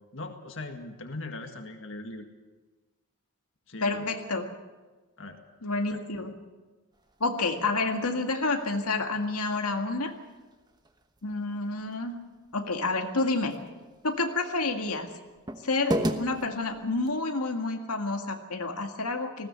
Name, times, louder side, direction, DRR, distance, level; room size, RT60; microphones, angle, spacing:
voice 1, 0.1-2.3 3.7-4.1 5.2-5.4 5.9-6.0, left 2 dB, 60° left, 5 dB, 1.9 m, -39 dB
voice 2, 3.8-4.5 5.6-6.3 7.2-10.1 11.2-12.2 12.5-13.6 14.0-15.1 15.6-19.5, left 3 dB, 90° left, 4 dB, 2.0 m, -29 dB
sound 1, 6.9-17.2, equal, 20° right, 1.1 m, -39 dB
20.0 x 16.5 x 8.2 m, 1.2 s
head